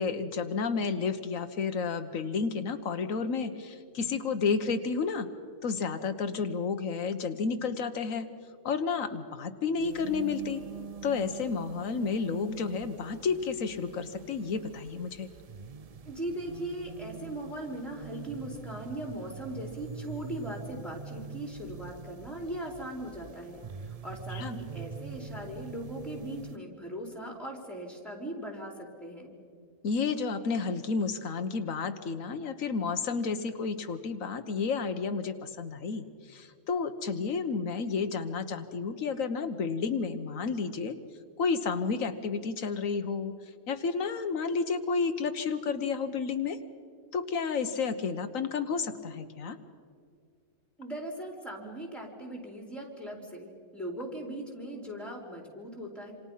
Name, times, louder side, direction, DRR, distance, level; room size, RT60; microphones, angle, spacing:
voice 1, 0.0-5.3 5.6-8.3 8.6-10.6 11.0-15.3 24.3-24.6 29.8-41.0 41.4-43.3 43.7-46.6 47.1-49.6, left 5 dB, 90° left, 8 dB, 1.5 m, -31 dB
sound 1, 9.8-26.6, right 5 dB, 40° right, 0.5 m, -44 dB
voice 2, 16.1-29.4 50.8-56.1, right 1 dB, ahead, 1 dB, 4.1 m, -39 dB
27.0 x 27.0 x 5.7 m, 2.1 s
omnidirectional pair, 1.4 m